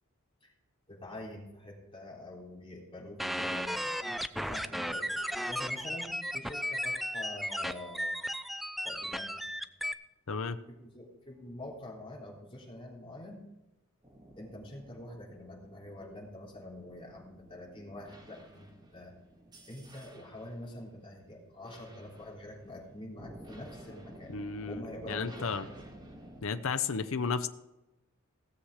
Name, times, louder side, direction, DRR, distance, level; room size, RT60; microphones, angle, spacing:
voice 1, 0.9-8.1 8.8-9.3 10.7-13.4 14.4-19.2 19.6-24.3 24.7-25.8, left 1 dB, 25° left, -3 dB, 3.6 m, -46 dB
sound 1, 3.2-9.9, equal, ahead, 0.4 m, -35 dB
sound 2, 14.0-26.4, right 1 dB, 20° right, 2.6 m, -54 dB
voice 2, 24.3-25.6 26.4-27.5, left 5 dB, 65° left, 11 dB, 0.7 m, -33 dB
17.5 x 7.3 x 4.9 m, 0.98 s
head